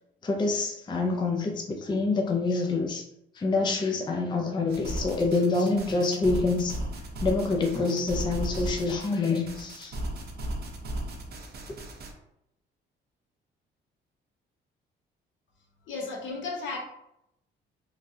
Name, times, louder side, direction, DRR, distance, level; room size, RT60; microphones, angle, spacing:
voice 1, 0.2-3.0 3.3-6.7 7.2-10.0, left 3 dB, 25° left, 1 dB, 0.4 m, -26 dB
sound 1, 4.7-12.1, right 1 dB, 55° right, 0.6 m, -35 dB
voice 2, 15.9-16.8, left 4 dB, 70° left, -1 dB, 1.0 m, -34 dB
3.1 x 2.3 x 2.7 m, 0.79 s
cardioid pair, 90°, 20 cm